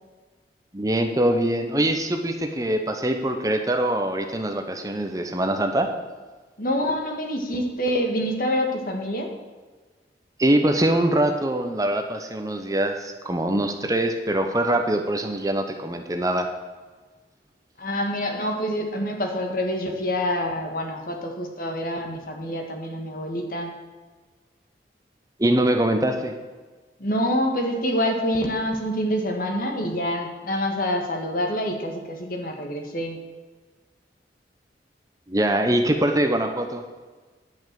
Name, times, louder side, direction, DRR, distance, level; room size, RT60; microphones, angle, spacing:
voice 1, 0.7-5.9 10.4-16.5 25.4-26.3 35.3-36.8, right 1 dB, 20° right, 5 dB, 0.8 m, -23 dB
voice 2, 6.6-9.3 17.8-23.7 27.0-33.2, equal, 50° left, 3 dB, 1.7 m, -26 dB
10.5 x 6.1 x 7.5 m, 1.3 s
head